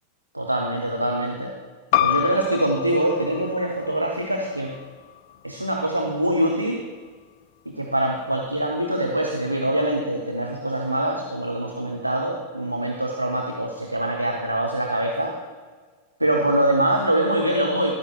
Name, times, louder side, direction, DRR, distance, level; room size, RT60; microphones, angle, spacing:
voice 1, 0.3-1.5 2.0-4.7 5.4-6.8 7.7-15.3 16.2-17.9, right 1 dB, 85° right, 1 dB, 0.8 m, -24 dB
sound 1, 1.9-7.1, left 13 dB, 45° left, 0.3 m, -29 dB
13.5 x 11.5 x 2.4 m, 1.5 s
figure-of-eight pair, 90°, 0 cm